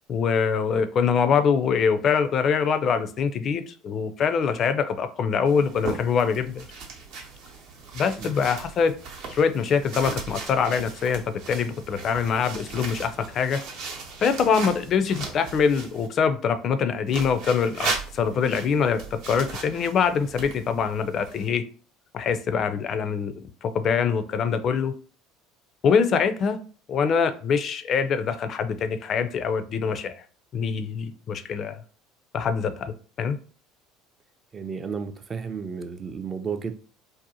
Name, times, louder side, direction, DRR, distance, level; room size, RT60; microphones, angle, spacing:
voice 1, 0.1-6.6 7.9-8.9 9.3-13.6 14.2-21.6 22.1-23.3 23.6-24.9 25.8-26.6 26.9-30.1 30.5-31.8 32.3-33.4, left 6 dB, 45° left, 0.4 m, -24 dB
sound 1, 5.5-16.1 17.1-21.5, right 4 dB, 65° right, 0.7 m, -37 dB
voice 2, 34.5-36.7, right 6 dB, 30° right, 0.4 m, -32 dB
2.6 x 2.1 x 2.7 m
hypercardioid pair, 70°, 0 cm